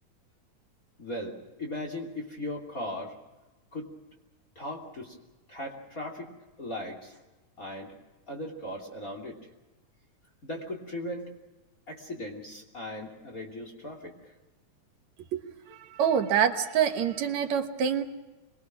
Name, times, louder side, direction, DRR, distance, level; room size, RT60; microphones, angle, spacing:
voice 1, 1.0-3.1 3.7-3.9 4.5-5.2 5.5-6.3 6.6-7.2 7.6-7.9 8.3-9.5 10.4-11.3 11.9-14.3, left 1 dB, 30° left, 1 dB, 3.2 m, -38 dB
voice 2, 15.9-18.0, right 8 dB, 70° right, 6 dB, 2.6 m, -25 dB
26.5 x 21.5 x 6.2 m, 1.1 s
omnidirectional pair, 3.4 m